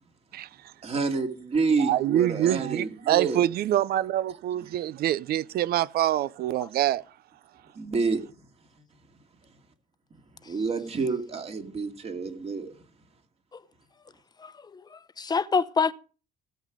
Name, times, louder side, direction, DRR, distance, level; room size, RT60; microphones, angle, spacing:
voice 1, 0.8-3.4 7.7-8.2 10.5-12.8, right 4 dB, 40° right, 2.5 m, -28 dB
voice 2, 1.8-7.0, right 12 dB, 65° right, 0.7 m, -25 dB
voice 3, 14.4-15.9, left 5 dB, 25° left, 0.9 m, -27 dB
17.0 x 7.7 x 5.1 m
cardioid pair, 110°, 17 cm